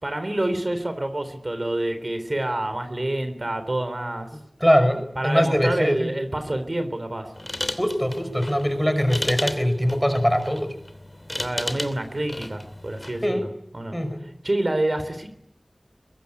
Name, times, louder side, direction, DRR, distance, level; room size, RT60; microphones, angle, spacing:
voice 1, 0.0-4.3 5.2-7.3 11.4-13.5 13.7-14.0 14.4-15.3, right 1 dB, 50° right, 9 dB, 3.7 m, -27 dB
voice 2, 4.6-6.1 7.8-10.7 13.2-13.5 13.9-14.2, equal, ahead, 8 dB, 6.1 m, -22 dB
sound 1, 7.3-13.3, left 1 dB, 30° left, 2.9 m, -34 dB
23.0 x 22.5 x 9.8 m, 0.74 s
wide cardioid pair, 50°, 0 cm